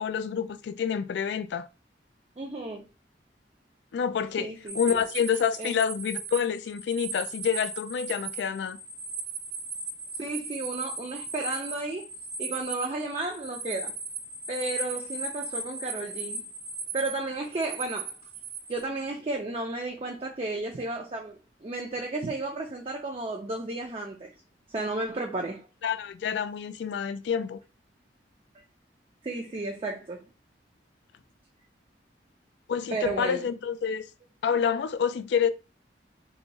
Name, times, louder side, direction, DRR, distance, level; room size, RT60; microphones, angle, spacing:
voice 1, 0.0-1.7 3.9-4.5 4.7-8.8 25.8-27.6 32.7-34.1 34.4-35.5, left 7 dB, 75° left, 0.3 m, -28 dB
voice 2, 2.4-2.8 4.4-5.0 5.6-5.8 10.2-12.1 12.4-14.0 14.5-16.4 16.9-18.1 18.7-24.3 24.7-25.6 29.2-30.2 32.9-33.4, right 2 dB, 35° right, 0.4 m, -33 dB
sound 1, 4.7-18.8, right 3 dB, 85° right, 1.0 m, -37 dB
2.7 x 2.3 x 4.0 m
head